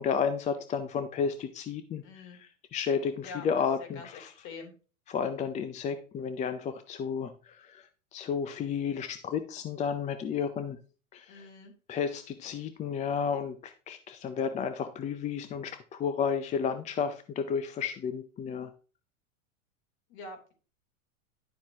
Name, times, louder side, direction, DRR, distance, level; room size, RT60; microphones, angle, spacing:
voice 1, 0.0-2.0 2.3-4.3 5.1-10.8 11.1-11.5 11.9-18.7, left 6 dB, 20° left, 10 dB, 0.5 m, -32 dB
voice 2, 2.0-2.4 3.2-3.5 3.8-4.7 11.3-11.7 20.1-20.5, left 3 dB, 50° left, 4 dB, 3.3 m, -45 dB
11.0 x 7.2 x 2.8 m, 0.36 s
hypercardioid pair, 120°, 41 cm